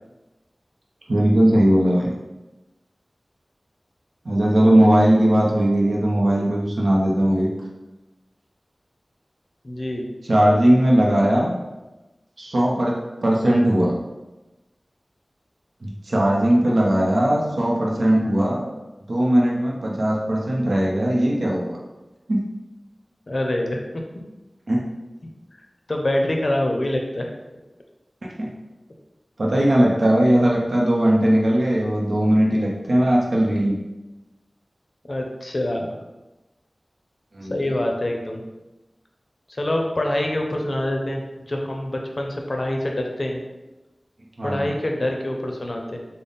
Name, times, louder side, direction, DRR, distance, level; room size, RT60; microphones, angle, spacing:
voice 1, 1.1-2.1 4.2-7.5 10.3-11.5 12.4-13.9 16.1-18.7 19.1-21.8 22.3-22.4 24.7-24.8 28.4-28.5 29.4-33.7 37.3-37.6 44.4-44.7, right 1 dB, 75° right, -3 dB, 0.6 m, -19 dB
voice 2, 9.6-10.1 23.3-24.0 25.9-27.3 35.1-35.9 37.5-38.4 39.5-41.2 41.5-43.4 44.4-46.0, left 1 dB, 50° left, 1 dB, 0.5 m, -25 dB
3.5 x 2.0 x 3.9 m, 1.1 s
wide cardioid pair, 65°, 0 cm